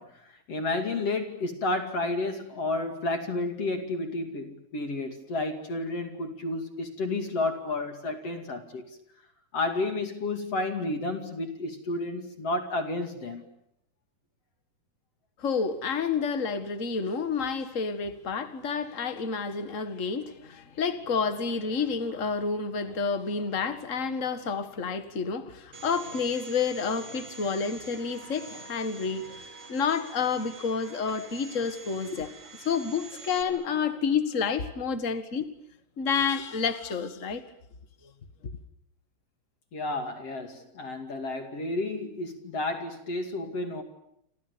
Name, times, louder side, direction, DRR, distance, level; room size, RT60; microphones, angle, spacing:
voice 1, 0.0-8.9 9.5-13.5 39.7-43.8, left 2 dB, 45° left, 3.1 m, -31 dB
voice 2, 15.4-29.4 29.7-32.3 32.6-35.5 36.0-37.4, left 5 dB, 80° left, 0.7 m, -29 dB
Domestic sounds home sounds, 25.7-33.4, right 5 dB, 35° right, 3.3 m, -46 dB
28.5 x 28.0 x 6.9 m
omnidirectional pair, 4.6 m